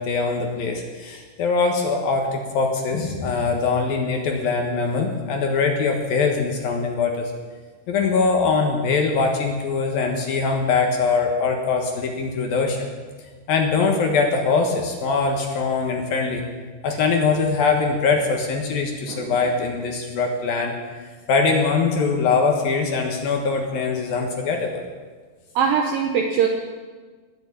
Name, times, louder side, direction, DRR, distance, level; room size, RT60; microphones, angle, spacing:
voice 1, 0.0-7.3 7.9-12.8 13.5-16.4 16.8-20.7 21.3-24.8, left 4 dB, 65° left, 2 dB, 2.8 m, -22 dB
voice 2, 25.6-26.5, right 7 dB, 75° right, 2 dB, 2.1 m, -21 dB
20.5 x 7.2 x 8.6 m, 1.4 s
omnidirectional pair, 5.3 m